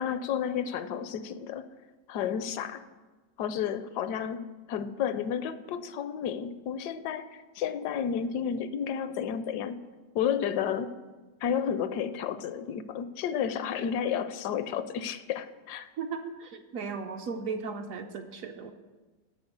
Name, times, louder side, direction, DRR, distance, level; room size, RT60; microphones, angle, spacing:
voice 1, 0.0-1.7 2.1-2.8 3.4-9.8 10.1-10.9 11.4-15.9, left 8 dB, 80° left, 13 dB, 1.1 m, -31 dB
voice 2, 16.0-18.7, right 5 dB, 65° right, 6 dB, 0.9 m, -36 dB
11.5 x 4.2 x 8.0 m, 1.3 s
omnidirectional pair, 1.8 m